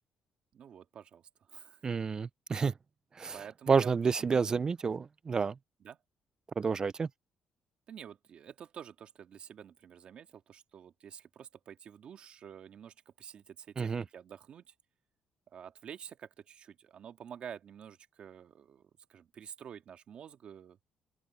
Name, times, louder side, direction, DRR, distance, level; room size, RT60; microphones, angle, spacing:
voice 1, 0.5-1.8 3.3-4.4 5.8-6.0 7.9-14.7 15.5-20.8, right 8 dB, 60° right, 2.1 m, -49 dB
voice 2, 1.8-2.7 3.2-3.4 3.7-5.6 6.6-7.1 13.8-14.0, right 5 dB, 35° right, 0.3 m, -29 dB
open air
cardioid pair, 95°, 2 cm